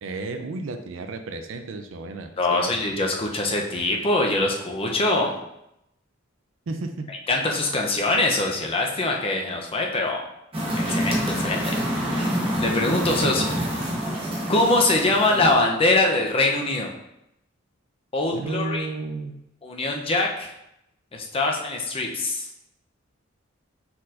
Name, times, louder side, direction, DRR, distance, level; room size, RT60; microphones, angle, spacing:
voice 1, 0.0-2.7 6.7-7.1 13.2-13.6 18.3-19.4, right 3 dB, 75° right, 6 dB, 0.5 m, -33 dB
voice 2, 2.4-5.3 7.1-10.2 10.7-11.8 12.6-13.4 14.5-16.9 18.1-18.9 19.6-20.5 21.1-22.5, left 2 dB, 30° left, 1 dB, 0.6 m, -23 dB
sound 1, 10.5-15.5, equal, 30° right, 1.0 m, -26 dB
4.3 x 4.0 x 2.5 m, 0.82 s
head